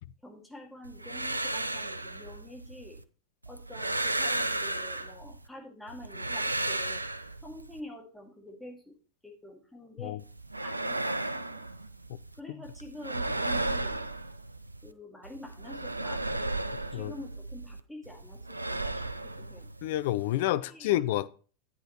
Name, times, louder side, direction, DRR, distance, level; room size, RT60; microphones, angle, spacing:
voice 1, 0.2-3.0 3.5-7.0 7.4-8.9 9.2-10.2 10.6-11.6 12.3-14.0 14.8-16.6 16.9-19.7 20.6-21.0, left 1 dB, 5° left, 2.1 m, -47 dB
sound 1, 0.8-3.0 3.4-5.5 5.9-7.8 10.2-12.4 12.6-14.9 15.2-17.8 18.0-20.4, right 2 dB, 85° right, 0.5 m, -34 dB
voice 2, 19.8-21.3, left 14 dB, 50° left, 0.5 m, -29 dB
10.5 x 9.1 x 3.0 m
figure-of-eight pair, 90°, 0 cm